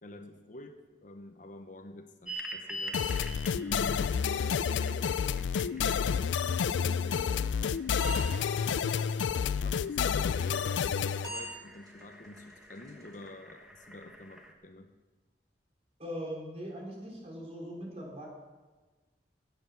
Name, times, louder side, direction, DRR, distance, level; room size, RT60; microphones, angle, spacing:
voice 1, 0.0-3.0 3.5-9.2 9.5-14.9, left 1 dB, 45° left, 6 dB, 0.9 m, -47 dB
sound 1, 2.3-14.5, equal, 5° right, 1.3 m, -47 dB
sound 2, 2.9-11.3, left 7 dB, 85° left, 0.4 m, -30 dB
sound 3, 6.0-13.3, right 1 dB, 20° right, 2.6 m, -47 dB
voice 2, 16.0-18.3, equal, 35° right, -2 dB, 3.8 m, -40 dB
17.0 x 8.1 x 5.8 m, 1.3 s
head